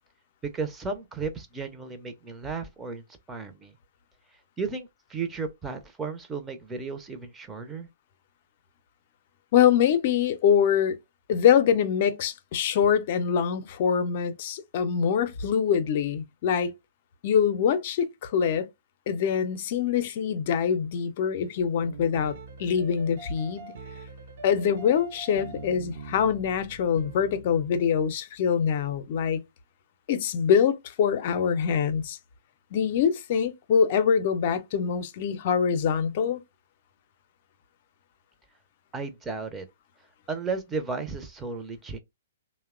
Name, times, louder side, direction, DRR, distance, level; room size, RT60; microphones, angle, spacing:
voice 1, 0.4-3.7 4.6-7.9 38.9-39.7 40.3-42.0, right 4 dB, 15° right, 0.5 m, -34 dB
voice 2, 9.5-11.0 11.3-16.7 17.2-18.7 19.1-23.8 24.4-29.4 30.1-32.2 32.7-36.4, left 7 dB, 50° left, 0.5 m, -24 dB
Happy blindfold, 21.8-27.9, right 4 dB, 60° right, 0.6 m, -43 dB
2.8 x 2.1 x 2.3 m
figure-of-eight pair, 120°, 0 cm